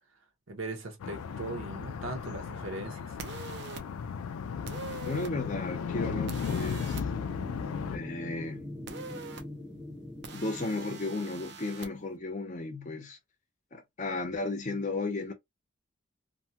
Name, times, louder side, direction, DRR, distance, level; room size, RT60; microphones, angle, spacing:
voice 1, 0.5-3.2, right 2 dB, 70° right, 0.9 m, -39 dB
sound 1, 1.0-8.0, left 6 dB, 90° left, 0.3 m, -35 dB
sound 2, 3.2-3.8 4.7-5.3 6.3-7.0 8.9-9.4 10.2-11.9, right 4 dB, 50° right, 0.5 m, -43 dB
voice 2, 5.0-7.0 7.9-8.7 10.3-13.2 13.7-15.3, left 2 dB, 35° left, 0.6 m, -34 dB
sound 3, 5.2-12.2, left 1 dB, 5° right, 0.6 m, -44 dB
2.6 x 2.2 x 2.8 m
head